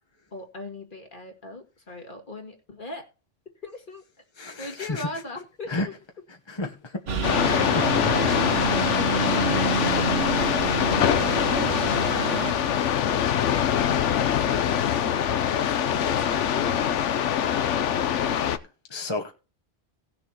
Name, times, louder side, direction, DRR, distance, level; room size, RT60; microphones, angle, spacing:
voice 1, 0.3-3.1 3.6-4.0 4.6-5.9, left 2 dB, 45° left, 2.1 m, -40 dB
voice 2, 4.4-5.1 5.7-5.9 6.5-6.8 7.1-8.5 18.9-19.3, left 2 dB, 25° left, 1.1 m, -32 dB
Engine, 7.1-12.5, right 4 dB, 75° right, 1.4 m, -28 dB
sound 1, 7.2-18.6, left 9 dB, 75° left, 1.1 m, -24 dB
18.0 x 6.8 x 2.9 m
omnidirectional pair, 1.2 m